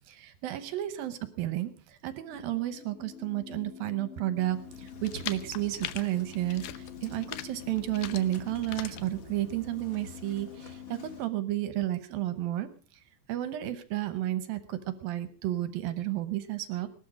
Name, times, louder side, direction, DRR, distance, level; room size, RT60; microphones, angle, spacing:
voice 1, 0.1-12.7 13.3-16.9, right 14 dB, 75° right, 12 dB, 2.3 m, -32 dB
sound 1, 2.3-11.2, left 11 dB, 50° left, 3.2 m, -48 dB
Engine starting, 4.4-11.3, equal, 30° left, 1.6 m, -51 dB
sound 2, 4.7-9.8, left 12 dB, 75° left, 2.2 m, -42 dB
19.5 x 13.0 x 4.9 m, 0.38 s
omnidirectional pair, 5.0 m